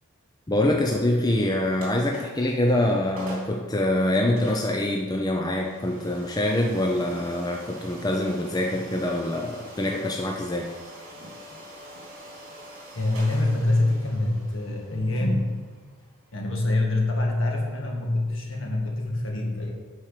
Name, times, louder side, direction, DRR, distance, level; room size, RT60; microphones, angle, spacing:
voice 1, 0.5-10.7, left 1 dB, 20° left, 0 dB, 0.5 m, -25 dB
sound 1, 1.8-2.5 2.9-3.0 3.2-3.6 4.4-17.1, equal, 70° right, 2.9 m, -45 dB
voice 2, 12.9-15.6 16.3-19.7, left 2 dB, 60° left, 0 dB, 1.7 m, -25 dB
9.0 x 4.6 x 6.6 m, 1.4 s
head